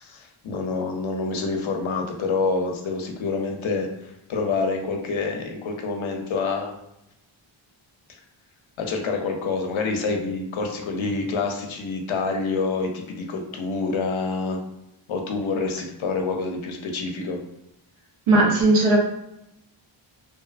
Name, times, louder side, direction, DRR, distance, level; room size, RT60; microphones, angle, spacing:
voice 1, 0.0-6.8 8.8-14.6 15.1-17.4, left 4 dB, 70° left, 3 dB, 0.6 m, -27 dB
voice 2, 18.3-19.0, right 2 dB, 80° right, 0 dB, 0.8 m, -17 dB
2.5 x 2.3 x 2.4 m, 0.85 s
wide cardioid pair, 90°, 50 cm